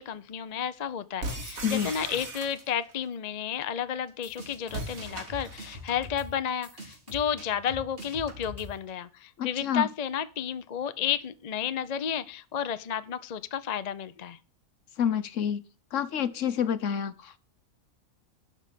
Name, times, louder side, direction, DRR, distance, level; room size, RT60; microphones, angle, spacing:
voice 1, 0.0-14.4, left 8 dB, 45° left, 12 dB, 0.6 m, -32 dB
sound 1, 1.2-2.9 4.7-5.8, right 2 dB, 70° right, 2.7 m, -38 dB
sound 2, 4.1-8.9, equal, 40° right, 3.1 m, -44 dB
voice 2, 9.4-9.9 15.0-15.6 15.9-17.4, left 8 dB, 60° left, 13 dB, 1.2 m, -28 dB
12.0 x 4.9 x 8.3 m, 0.36 s
omnidirectional pair, 1.5 m